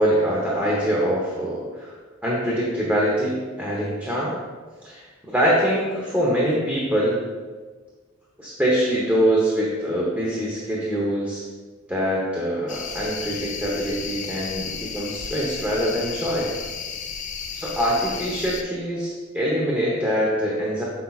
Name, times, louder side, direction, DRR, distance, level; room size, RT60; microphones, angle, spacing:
voice 1, 0.0-1.9 2.2-4.4 4.8-7.2 8.4-11.4 11.9-16.5 17.5-20.8, equal, 10° right, -5 dB, 0.9 m, -24 dB
sound 1, 12.7-18.6, left 6 dB, 35° left, 0.5 m, -33 dB
8.1 x 5.7 x 2.4 m, 1.4 s
head